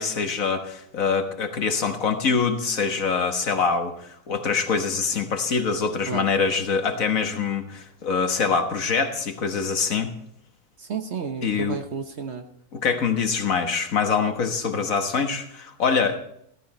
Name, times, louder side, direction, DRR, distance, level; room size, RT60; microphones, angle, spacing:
voice 1, 0.0-10.1 11.4-11.8 12.7-16.2, left 5 dB, 60° left, 6 dB, 1.7 m, -24 dB
voice 2, 10.8-12.4, right 6 dB, 50° right, 7 dB, 1.1 m, -31 dB
15.0 x 13.5 x 4.3 m, 0.70 s
omnidirectional pair, 1.6 m